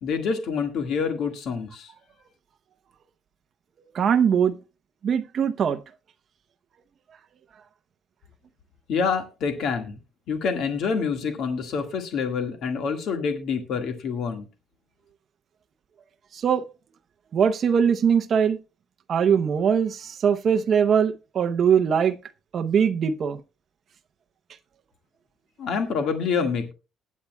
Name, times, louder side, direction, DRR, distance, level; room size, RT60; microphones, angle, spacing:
voice 1, 0.0-1.9 8.9-10.0 10.3-14.5 25.6-26.7, left 5 dB, 55° left, 1.6 m, -27 dB
voice 2, 3.9-4.6 5.0-5.8 16.3-16.6 17.3-18.6 19.1-22.2 22.5-23.4, right 7 dB, 40° right, 0.7 m, -21 dB
20.0 x 8.2 x 2.2 m
cardioid pair, 165°, 0 cm